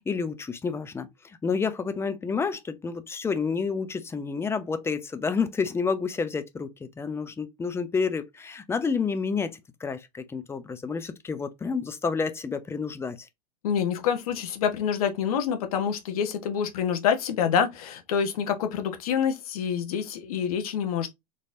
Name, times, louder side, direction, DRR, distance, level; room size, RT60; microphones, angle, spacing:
voice 1, 0.1-13.3, left 5 dB, 10° left, 0.6 m, -29 dB
voice 2, 13.6-21.1, left 7 dB, 65° left, 1.1 m, -27 dB
4.2 x 3.2 x 2.6 m
hypercardioid pair, 105°, 20 cm